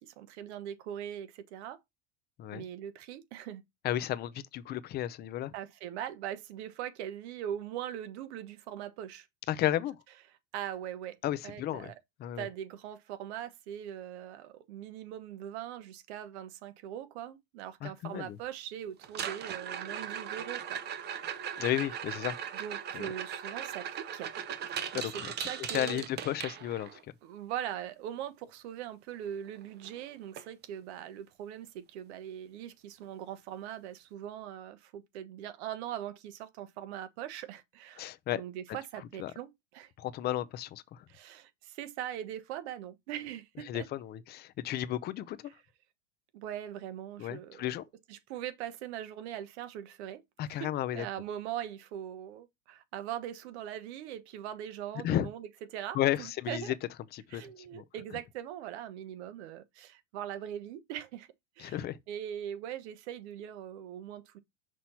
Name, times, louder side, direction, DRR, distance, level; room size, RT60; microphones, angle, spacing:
voice 1, 0.0-1.8 2.5-3.6 5.5-9.3 10.5-11.2 11.4-11.9 12.3-20.8 22.5-24.3 24.7-26.0 27.2-39.9 41.1-43.8 46.3-47.7 48.1-50.2 50.6-56.7 57.3-61.3 61.6-64.4, right 10 dB, 65° right, 1.2 m, -41 dB
voice 2, 3.8-5.5 9.5-10.0 11.2-11.9 12.2-12.5 17.8-18.4 21.6-22.4 22.9-23.1 24.9-25.1 25.4-25.5 25.7-27.0 38.0-38.4 39.2-39.3 40.0-41.0 43.7-45.4 47.2-47.8 50.4-51.1 55.0-55.3 55.9-56.7 57.1-57.4 57.7-57.8 61.6-62.0, left 13 dB, 30° left, 0.6 m, -33 dB
sound 1, 19.0-27.0 29.3-29.4 29.6-29.9 30.4-30.5 31.0-31.1 33.0-33.1, right 8 dB, 30° right, 0.8 m, -38 dB
6.0 x 3.0 x 5.5 m
supercardioid pair, 135°, 35 cm